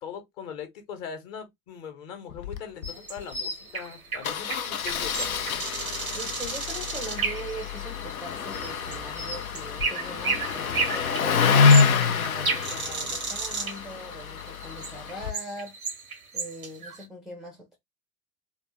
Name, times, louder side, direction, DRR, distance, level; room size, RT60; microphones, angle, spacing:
voice 1, 0.0-5.6, left 7 dB, 40° left, 1.0 m, -40 dB
Engine starting, 2.3-2.6 2.8-2.9 3.2-3.3 4.2-15.3, left 5 dB, 80° left, 0.6 m, -26 dB
sound 1, 2.8-17.0, right 4 dB, 90° right, 0.7 m, -33 dB
voice 2, 6.1-17.8, right 1 dB, ahead, 0.4 m, -41 dB
3.4 x 2.2 x 2.9 m
figure-of-eight pair, 80°, 42 cm